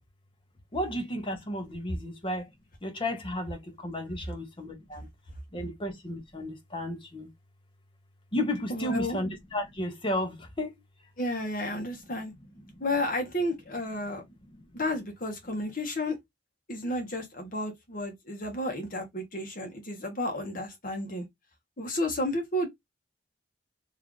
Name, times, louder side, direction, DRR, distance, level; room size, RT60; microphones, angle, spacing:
voice 1, 0.7-2.5 2.8-5.1 5.5-7.3 8.3-10.7, left 1 dB, 25° left, 0.8 m, -33 dB
voice 2, 8.7-9.2 11.2-12.3 12.8-14.2 14.7-16.2 16.7-21.2 21.8-22.7, left 1 dB, 50° left, 1.1 m, -32 dB
3.2 x 2.5 x 3.7 m
head